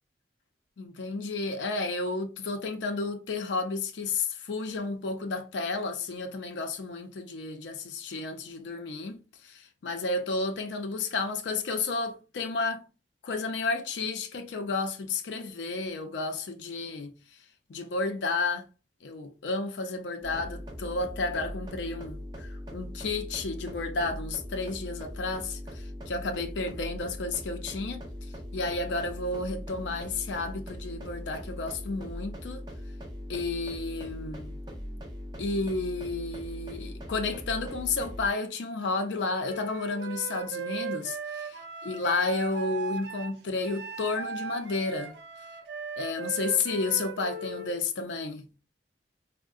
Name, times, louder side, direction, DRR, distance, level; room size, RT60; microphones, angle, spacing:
voice 1, 0.8-12.9 13.2-17.1 17.7-18.7 19.0-28.0 28.5-32.6 33.3-34.6 35.4-41.5 41.9-45.2 46.0-48.5, left 3 dB, 85° left, 0.4 m, -32 dB
sound 1, 20.2-38.3, equal, 25° right, 0.6 m, -40 dB
Wind instrument woodwind instrument, 39.4-47.8, right 5 dB, 70° right, 0.5 m, -38 dB
3.5 x 2.0 x 2.3 m
head